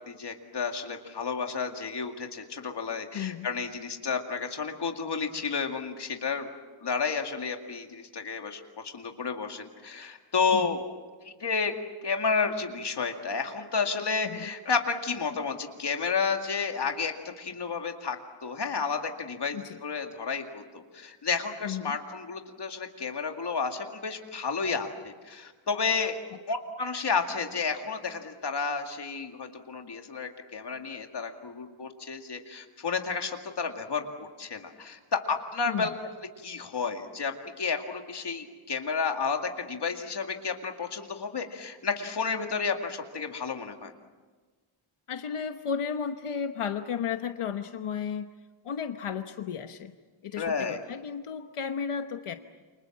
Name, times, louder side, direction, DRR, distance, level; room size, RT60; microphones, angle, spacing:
voice 1, 0.1-6.5 6.8-10.8 11.2-11.7 12.0-26.2 26.5-35.9 36.4-43.9 50.4-50.8, left 5 dB, 55° left, 4 dB, 2.3 m, -31 dB
voice 2, 3.1-3.5 10.5-10.8 14.2-14.5 19.5-19.8 21.6-22.0 35.6-35.9 45.1-48.3 48.6-49.9 50.2-52.3, left 7 dB, 90° left, 7 dB, 1.1 m, -33 dB
29.0 x 25.5 x 7.4 m, 1.4 s
wide cardioid pair, 180°, 49 cm